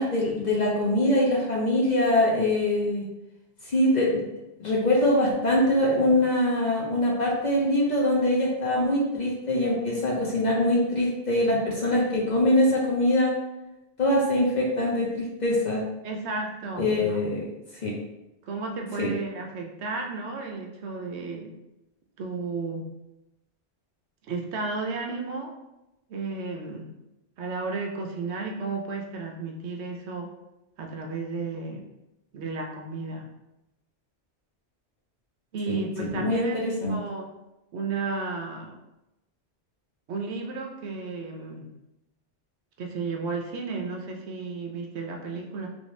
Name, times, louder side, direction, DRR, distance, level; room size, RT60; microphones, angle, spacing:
voice 1, 0.0-3.1 3.6-4.1 4.6-13.4 14.0-15.8 16.8-17.4 17.8-17.9 19.0-19.1 35.7-37.0, left 1 dB, 45° left, -3 dB, 0.7 m, -23 dB
voice 2, 16.0-17.2 18.4-21.5 22.2-22.9 24.2-25.5 26.1-26.9 27.4-30.3 30.8-31.9 32.3-33.3 35.5-36.6 36.9-37.3 37.7-38.8 40.1-41.7 42.8-45.7, right 4 dB, 75° right, 2 dB, 0.8 m, -33 dB
3.1 x 2.6 x 3.1 m, 0.94 s
omnidirectional pair, 1.2 m